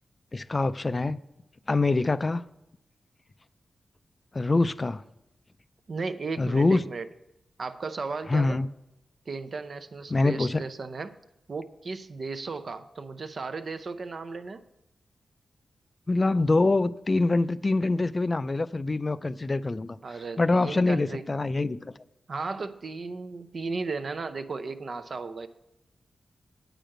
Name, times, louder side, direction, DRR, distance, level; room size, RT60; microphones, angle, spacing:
voice 1, 0.3-1.2 1.7-2.4 4.3-5.0 6.4-6.8 8.3-8.7 10.1-10.6 16.1-20.0 20.4-21.9, left 2 dB, 35° left, 14 dB, 0.3 m, -24 dB
voice 2, 5.9-7.1 7.6-8.6 9.3-11.1 11.5-14.6 20.0-21.2 22.3-25.5, right 4 dB, 60° right, 10 dB, 0.6 m, -35 dB
8.8 x 5.1 x 7.6 m, 0.89 s
cardioid pair, 70°, 0 cm